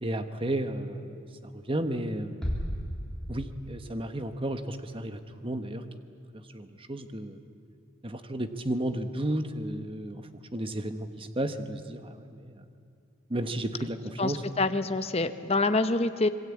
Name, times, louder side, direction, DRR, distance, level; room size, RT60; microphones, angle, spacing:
voice 1, 0.0-1.2 1.7-2.5 3.3-5.8 6.5-7.4 8.0-12.6 13.3-14.4, right 1 dB, 25° right, 8 dB, 1.2 m, -33 dB
sound 1, 2.4-4.0, equal, 5° left, 3.7 m, -34 dB
voice 2, 14.2-16.3, left 2 dB, 30° left, 10 dB, 0.9 m, -26 dB
26.5 x 22.0 x 8.6 m, 2.5 s
head